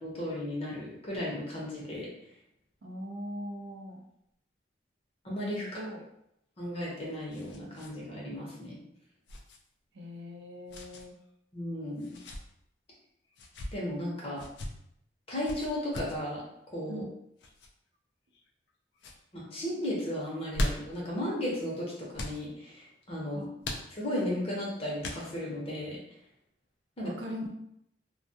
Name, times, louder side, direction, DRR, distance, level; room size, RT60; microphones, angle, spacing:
voice 1, 0.0-2.1 5.2-5.8 6.6-8.8 11.5-12.2 13.7-14.4 15.3-16.4 16.7-17.0 19.3-23.5 23.9-26.0 27.0-27.1, left 1 dB, 30° left, -4 dB, 0.7 m, -35 dB
voice 2, 2.8-4.0 5.6-6.1 9.9-11.2 16.9-17.1 23.3-23.5 27.0-27.5, equal, 70° right, 1 dB, 0.5 m, -40 dB
sound 1, 6.6-7.9 8.2-8.3 9.3-9.6 10.7-11.1 12.0-12.4 13.3-13.7 14.4-14.7 15.4-16.2 17.4-17.7 18.3-18.7 19.0-19.2 20.3-21.0 22.1-22.4 23.6-24.3 25.0-25.5, left 1 dB, 65° left, 0.3 m, -38 dB
2.2 x 2.1 x 2.7 m, 0.76 s
head